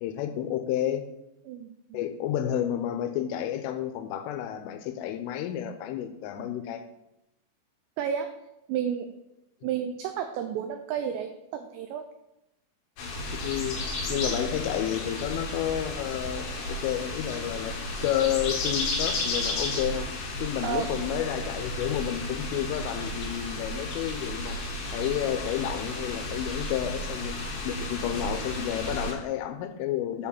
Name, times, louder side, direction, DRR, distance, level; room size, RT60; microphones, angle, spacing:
voice 1, 0.0-1.1 1.9-6.8 13.4-13.8 14.1-20.1 20.4-24.6 24.9-27.4 27.6-30.3, left 11 dB, 85° left, 8 dB, 3.2 m, -30 dB
voice 2, 1.5-2.0 8.0-8.3 8.7-9.1 9.6-12.1 20.6-20.9, right 8 dB, 90° right, 7 dB, 2.5 m, -31 dB
sound 1, 13.0-29.1, left 2 dB, 65° left, 3.0 m, -33 dB
7.9 x 4.7 x 7.0 m, 0.89 s
omnidirectional pair, 5.7 m